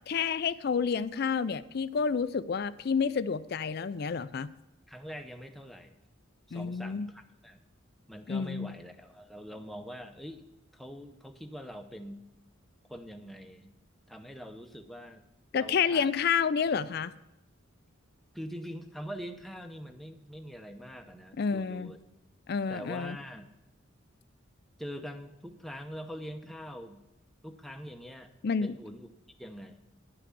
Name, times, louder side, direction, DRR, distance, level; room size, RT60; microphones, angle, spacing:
voice 1, 0.1-4.5 6.5-7.1 8.3-8.7 15.5-17.1 21.4-21.9 22.5-23.2 28.4-28.7, left 6 dB, 50° left, 15 dB, 0.4 m, -29 dB
voice 2, 4.9-6.0 6.5-7.6 8.1-10.5 10.7-12.2 12.9-13.7 14.1-15.3 15.5-16.1 18.3-22.0 22.7-23.5 24.8-27.0 27.4-28.3 28.6-29.1 29.4-29.8, equal, ahead, 5 dB, 0.8 m, -43 dB
11.0 x 5.9 x 8.3 m, 0.93 s
head